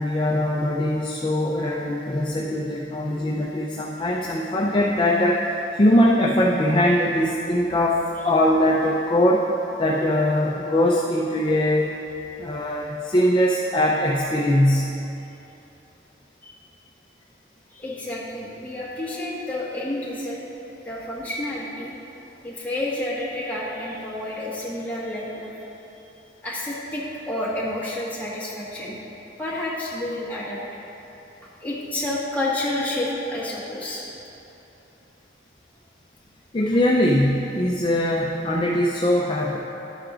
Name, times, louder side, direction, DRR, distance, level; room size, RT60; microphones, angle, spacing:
voice 1, 0.0-5.5 5.7-9.5 9.8-11.9 12.4-15.0 36.5-39.6, left 1 dB, 30° left, -3 dB, 0.5 m, -21 dB
voice 2, 17.7-20.4 20.8-21.9 22.4-25.5 26.4-29.0 29.4-30.6 31.6-34.0, left 1 dB, 10° left, -7 dB, 1.5 m, -29 dB
11.5 x 8.0 x 2.5 m, 2.9 s
head